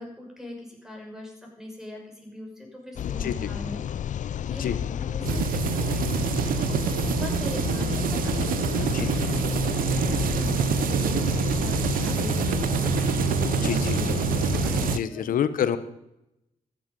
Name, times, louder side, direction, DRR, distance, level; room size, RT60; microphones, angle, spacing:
voice 1, 0.0-6.8 7.1-11.2 11.5-12.9 13.2-14.2 14.5-15.4, left 1 dB, 5° right, 0 dB, 6.1 m, -41 dB
voice 2, 3.0-3.5 4.5-4.8 8.8-9.1 13.4-14.2 14.8-15.8, left 9 dB, 80° left, 13 dB, 1.1 m, -29 dB
sound 1, 3.0-15.0, left 9 dB, 65° left, 0.4 m, -30 dB
sound 2, 5.2-15.0, right 9 dB, 90° right, 0.7 m, -26 dB
14.0 x 10.5 x 5.4 m, 0.87 s
cardioid pair, 70°, 14 cm